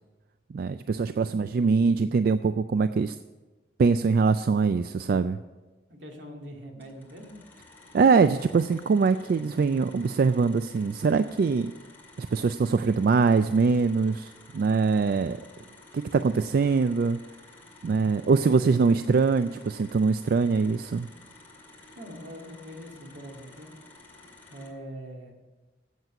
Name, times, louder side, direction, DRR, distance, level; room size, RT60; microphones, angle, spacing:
voice 1, 0.5-3.2 3.8-5.4 7.9-11.7 12.2-15.4 15.9-17.2 17.8-21.1, right 4 dB, 55° right, 11 dB, 0.3 m, -23 dB
voice 2, 1.1-2.0 5.9-7.4 18.3-18.5 18.8-19.0 21.9-23.7 24.5-25.4, equal, 80° right, 1 dB, 2.2 m, -43 dB
sound 1, 6.8-24.7, left 2 dB, 10° left, 2.3 m, -52 dB
8.1 x 7.6 x 8.8 m, 1.2 s
head